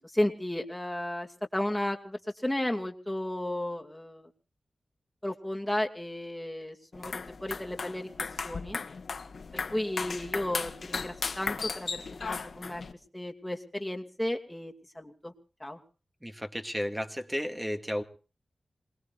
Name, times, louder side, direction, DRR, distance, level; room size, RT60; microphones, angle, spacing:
voice 1, 0.1-4.2 5.2-8.1 8.4-8.8 9.5-12.8 13.1-15.3 15.6-15.8, left 1 dB, 10° left, 2 dB, 2.6 m, -33 dB
sound 1, 6.9-12.9, left 4 dB, 70° left, 1.4 m, -36 dB
voice 2, 16.2-18.0, equal, 5° right, 6 dB, 2.1 m, -33 dB
27.5 x 20.5 x 2.6 m, 0.36 s
cardioid pair, 65°, 0 cm